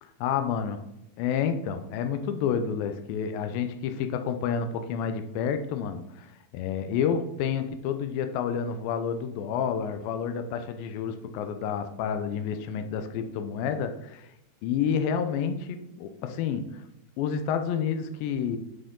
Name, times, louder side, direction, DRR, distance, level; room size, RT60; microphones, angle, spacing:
voice 1, 0.2-0.9 1.2-14.3 14.6-16.8 17.2-18.6, left 7 dB, 90° left, 8 dB, 2.4 m, -29 dB
9.4 x 4.3 x 3.7 m, 0.83 s
omnidirectional pair, 4.1 m